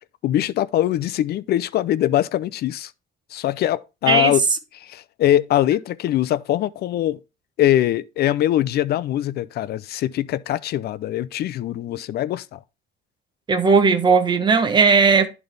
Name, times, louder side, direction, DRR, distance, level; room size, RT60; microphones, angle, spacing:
voice 1, 0.2-2.9 3.3-4.4 4.8-7.2 7.6-12.6, left 12 dB, 55° left, 0.4 m, -22 dB
voice 2, 4.1-4.4 13.5-15.3, right 5 dB, 25° right, 0.9 m, -16 dB
11.0 x 4.0 x 3.4 m
cardioid pair, 155°, 20 cm